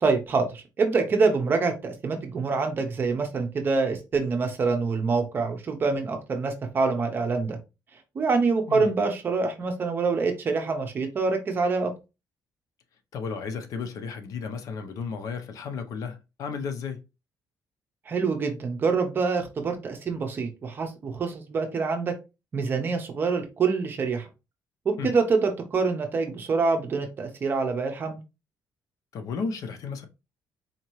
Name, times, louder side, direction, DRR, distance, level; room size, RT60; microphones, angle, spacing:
voice 1, 0.0-7.6 8.1-11.9 18.1-22.1 22.5-24.2 24.8-28.2, right 4 dB, 30° right, 0.8 m, -26 dB
voice 2, 8.7-9.0 13.1-17.0 25.0-25.1 29.1-30.1, left 5 dB, 60° left, 0.7 m, -33 dB
4.3 x 2.8 x 3.0 m
cardioid pair, 170°, 7 cm